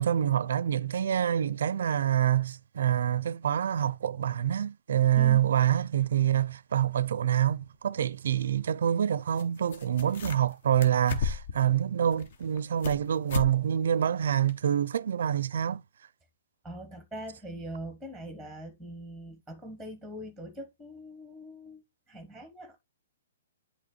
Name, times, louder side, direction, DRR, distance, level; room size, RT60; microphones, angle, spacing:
voice 1, 0.0-15.8, right 10 dB, 70° right, 0.4 m, -26 dB
voice 2, 5.1-5.5 16.6-22.8, equal, 5° left, 1.0 m, -42 dB
sound 1, 7.7-7.8 9.4-9.5 9.7-10.5 10.8-11.6 12.1-13.0 13.3-13.5 13.9-14.0 14.5-14.6, left 6 dB, 55° left, 0.9 m, -34 dB
8.1 x 2.9 x 4.2 m
hypercardioid pair, 155°, 0 cm